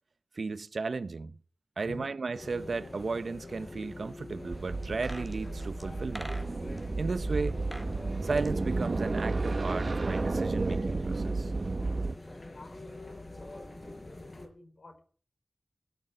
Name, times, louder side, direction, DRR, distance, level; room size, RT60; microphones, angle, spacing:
voice 1, 0.3-1.3 1.8-6.3 7.0-7.6 8.2-11.5, right 4 dB, 90° right, 0.7 m, -34 dB
voice 2, 1.8-2.1 12.4-12.8 13.4-15.0, left 2 dB, 80° left, 4.6 m, -50 dB
sound 1, 2.3-14.5, left 2 dB, 45° left, 4.5 m, -45 dB
sound 2, 4.5-12.2, right 3 dB, 65° right, 1.0 m, -32 dB
sound 3, 4.8-6.8 7.5-7.9 8.2-9.6 9.9-10.0, equal, ahead, 2.2 m, -46 dB
19.0 x 6.7 x 8.5 m
wide cardioid pair, 65°, 0 cm